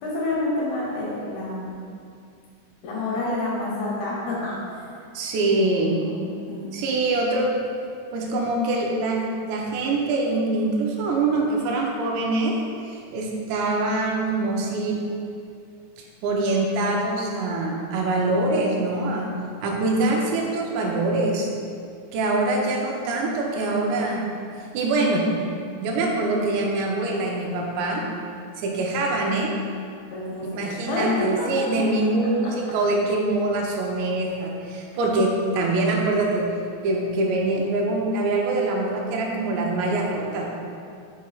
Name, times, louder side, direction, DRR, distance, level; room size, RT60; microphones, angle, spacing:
voice 1, 0.0-1.7 2.8-4.6 5.6-6.2 6.5-6.7 30.1-31.5 32.2-32.5, left 1 dB, 75° left, -6 dB, 2.5 m, -28 dB
voice 2, 5.1-5.9 6.7-7.5 8.1-12.5 12.9-15.0 16.0-19.3 19.6-21.5 22.1-24.3 24.7-25.3 25.8-28.0 28.6-29.5 30.6-36.5 36.8-40.5, right 2 dB, 80° right, -1 dB, 2.7 m, -24 dB
7.4 x 6.2 x 2.4 m, 2.4 s
omnidirectional pair, 5.4 m